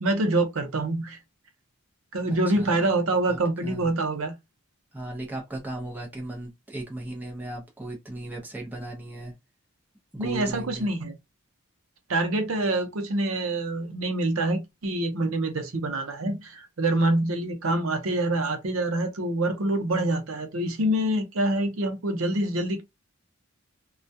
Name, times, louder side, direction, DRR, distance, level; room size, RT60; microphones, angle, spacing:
voice 1, 0.0-1.2 2.1-4.3 10.2-11.2 12.1-22.8, right 2 dB, 80° right, 0.7 m, -26 dB
voice 2, 2.5-2.9 3.3-4.0 4.9-9.3 10.1-10.9, right 1 dB, 10° right, 0.6 m, -37 dB
2.3 x 2.2 x 2.6 m
head